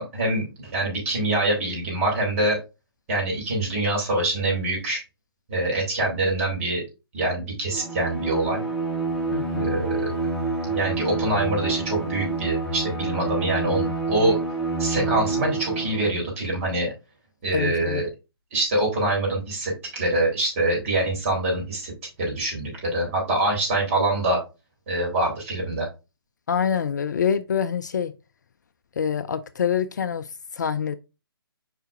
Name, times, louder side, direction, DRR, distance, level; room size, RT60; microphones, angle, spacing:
voice 1, 0.0-2.6 3.1-5.0 5.5-6.8 7.1-8.6 9.6-10.1 10.6-14.4 14.8-16.9 17.4-18.1 18.5-21.9 22.2-24.4 24.9-25.9, right 2 dB, 35° right, 4.0 m, -25 dB
Bowed string instrument, 7.7-16.2, right 3 dB, ahead, 1.3 m, -28 dB
voice 2, 9.3-9.7 17.5-18.1 26.5-28.1 29.0-31.0, left 7 dB, 45° left, 0.4 m, -26 dB
7.9 x 5.0 x 2.6 m
figure-of-eight pair, 135°, 13 cm